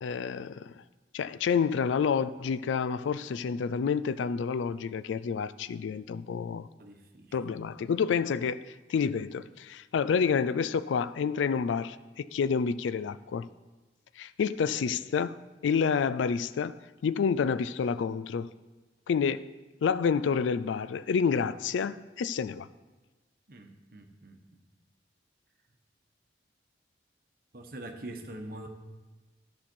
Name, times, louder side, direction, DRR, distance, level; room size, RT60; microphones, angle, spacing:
voice 1, 0.0-0.7 1.1-6.7 7.3-13.5 14.2-18.5 19.1-19.5 19.8-22.7, left 6 dB, 85° left, 0.3 m, -29 dB
voice 2, 6.8-7.4 23.5-24.6 27.5-28.7, right 1 dB, 50° right, 1.0 m, -44 dB
12.5 x 5.6 x 4.4 m
head